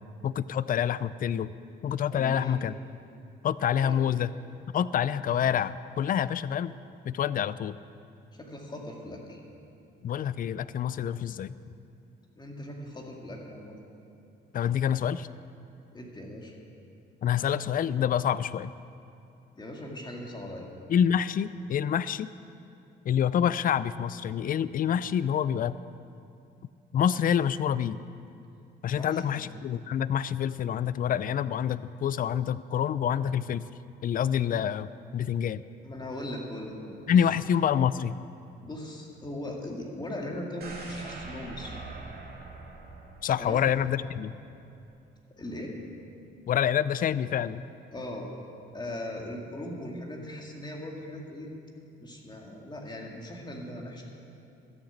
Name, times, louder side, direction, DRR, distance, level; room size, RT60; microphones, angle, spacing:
voice 1, 0.2-1.5 1.8-2.8 3.4-4.3 4.7-6.7 7.0-7.8 10.0-11.5 14.5-15.3 17.2-18.7 20.9-22.3 23.1-25.8 26.9-28.0 28.8-33.6 34.0-35.6 37.1-38.2 43.2-44.3 46.5-47.6, left 9 dB, 45° left, 17 dB, 0.4 m, -27 dB
voice 2, 2.1-2.6 3.8-4.0 8.3-9.4 12.4-13.8 15.9-16.5 19.6-20.7 28.9-29.4 35.8-37.2 38.6-41.8 43.4-43.6 45.3-45.7 47.9-48.3 48.7-51.5 52.0-54.0, left 1 dB, 20° left, 0 dB, 2.1 m, -39 dB
sound 1, 40.6-44.6 44.9-45.0, right 3 dB, 55° right, 2.5 m, -44 dB
13.0 x 6.5 x 8.2 m, 2.6 s
cardioid pair, 90°, 20 cm